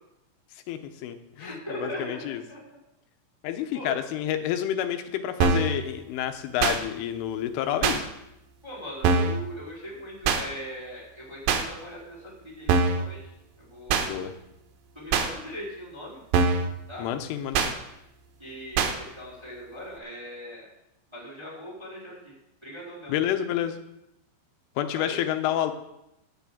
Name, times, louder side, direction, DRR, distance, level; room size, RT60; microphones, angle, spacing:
voice 1, 0.7-2.4 3.4-8.1 14.0-14.3 17.0-17.7 23.1-23.8 24.8-25.7, left 11 dB, 90° left, 7 dB, 3.5 m, -29 dB
voice 2, 1.4-2.6 3.7-4.0 8.6-13.2 13.6-14.3 14.9-16.2 16.9-17.1 18.4-20.7 21.1-22.3 22.6-23.1 24.9-25.2, equal, 5° right, -5 dB, 3.5 m, -40 dB
sound 1, 5.4-5.7 6.6-6.8 7.8-8.0 9.0-9.4 10.3-10.4 11.5-11.6 12.7-13.0 13.9-14.1 15.1-15.3 16.3-16.7 17.5-17.7 18.8-18.9, right 5 dB, 75° right, 3.0 m, -22 dB
11.0 x 6.7 x 8.5 m, 0.85 s
omnidirectional pair, 5.5 m